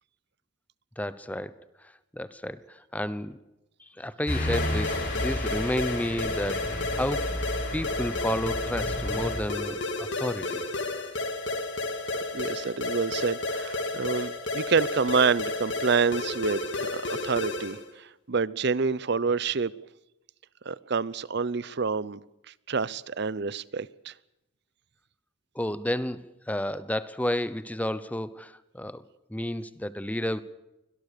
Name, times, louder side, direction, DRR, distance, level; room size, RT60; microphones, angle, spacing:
voice 1, 1.0-1.5 2.1-3.4 3.8-7.3 7.7-10.6 25.5-29.0 29.3-30.4, left 1 dB, 10° left, 0.8 m, -31 dB
city traffic day, 4.3-9.4, left 1 dB, 45° left, 6.9 m, -32 dB
sound 1, 4.5-17.9, left 2 dB, 65° left, 2.1 m, -32 dB
voice 2, 12.1-19.7 20.6-22.2 22.7-24.1, right 5 dB, 55° right, 0.7 m, -28 dB
24.0 x 17.5 x 6.7 m
head